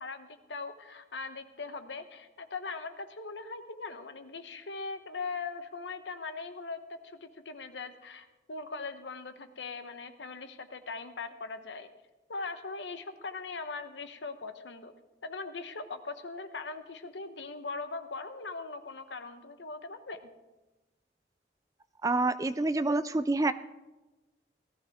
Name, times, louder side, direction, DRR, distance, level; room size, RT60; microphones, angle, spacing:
voice 1, 0.0-11.9 12.3-14.9 15.2-20.3, left 4 dB, 80° left, 9 dB, 1.0 m, -40 dB
voice 2, 22.0-23.5, right 2 dB, 20° right, 13 dB, 0.3 m, -27 dB
18.0 x 13.5 x 3.6 m, 1.1 s
head